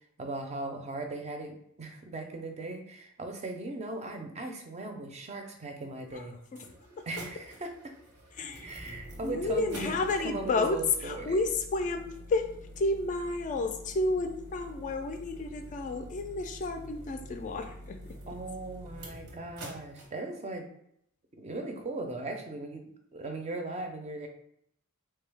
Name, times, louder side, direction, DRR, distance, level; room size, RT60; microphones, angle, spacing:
voice 1, 0.2-6.4 7.1-7.9 8.6-11.4 18.3-20.7 21.4-22.8 23.1-24.3, right 2 dB, 30° right, 5 dB, 0.5 m, -38 dB
sound 1, 5.8-5.9 6.4-20.1, equal, 85° right, 0.9 m, -47 dB
voice 2, 6.1-6.7 8.4-12.5 12.8-18.2, left 3 dB, 35° left, 6 dB, 0.3 m, -31 dB
3.7 x 2.2 x 3.3 m, 0.71 s
head